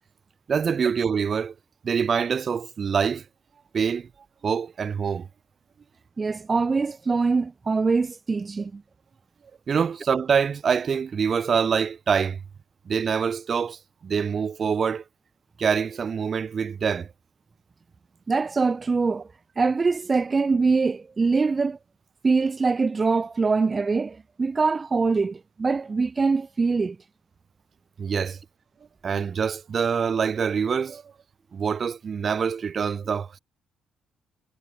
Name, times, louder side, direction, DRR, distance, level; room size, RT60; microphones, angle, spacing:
voice 1, 0.5-1.5 1.8-3.2 3.7-4.1 4.4-5.3 9.7-12.4 12.9-15.0 15.6-17.1 28.0-28.4 29.0-31.0 31.5-33.4, right 6 dB, 45° right, 3.4 m, -25 dB
voice 2, 6.2-8.8 18.3-19.3 19.6-21.8 22.2-27.0, right 4 dB, 30° right, 3.0 m, -23 dB
cardioid pair, 90°, 0 cm